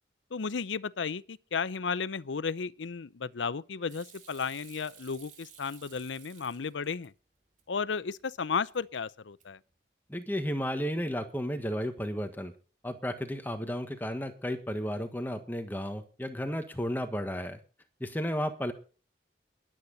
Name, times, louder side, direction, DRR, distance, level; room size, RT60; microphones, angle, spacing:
voice 1, 0.3-7.1 7.7-9.6, left 5 dB, 90° left, 0.6 m, -34 dB
Hands / Sink (filling or washing), 3.9-7.1 7.5-8.2 8.5-9.0 9.3-9.7, right 8 dB, 45° right, 2.9 m, -54 dB
voice 2, 10.1-12.5 12.8-17.6 18.0-18.7, equal, 10° left, 1.4 m, -33 dB
21.5 x 8.6 x 4.1 m
head